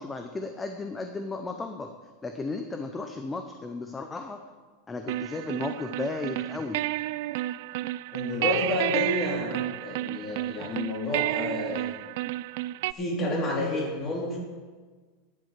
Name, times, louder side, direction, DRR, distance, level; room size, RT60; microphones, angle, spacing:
voice 1, 0.0-1.9 2.2-4.4 4.9-6.9, left 3 dB, 10° left, 6 dB, 0.7 m, -34 dB
sound 1, 5.1-12.9, right 16 dB, 60° right, 0.3 m, -31 dB
voice 2, 8.1-11.9 12.9-14.4, left 2 dB, 25° left, -2 dB, 3.7 m, -30 dB
10.5 x 8.9 x 7.4 m, 1.4 s
supercardioid pair, 155°, 0 cm